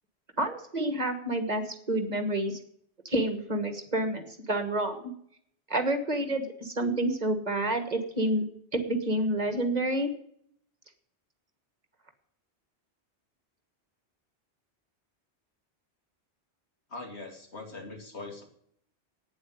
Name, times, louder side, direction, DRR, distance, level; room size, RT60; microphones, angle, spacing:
voice 1, 0.4-2.6 3.0-5.1 5.7-8.4 8.7-10.1, right 1 dB, 40° right, 7 dB, 1.6 m, -29 dB
voice 2, 16.9-18.4, left 3 dB, 75° left, 2 dB, 2.8 m, -41 dB
9.3 x 7.8 x 9.3 m, 0.67 s
omnidirectional pair, 1.1 m